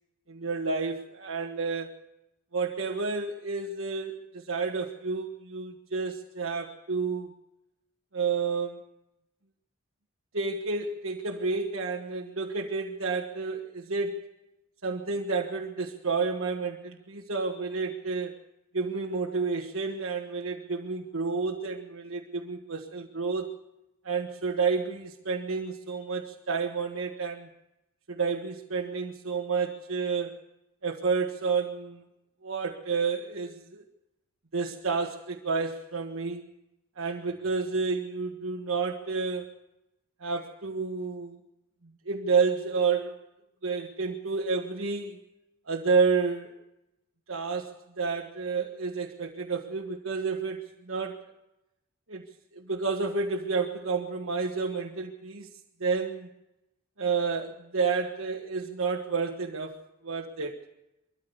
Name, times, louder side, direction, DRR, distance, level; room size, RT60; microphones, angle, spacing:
voice 1, 0.3-1.9 2.5-7.3 8.1-8.8 10.3-14.3 14.8-18.3 18.7-23.5 24.0-27.5 28.1-30.3 30.8-32.0 32.4-33.8 34.5-36.4 37.0-39.5 40.2-41.4 42.1-43.1 43.6-45.2 45.7-46.5 47.3-51.2 52.1-52.3 52.5-55.5 55.8-56.3 57.0-60.6, right 4 dB, 75° right, 0 dB, 1.5 m, -30 dB
23.0 x 14.5 x 8.0 m, 0.92 s
head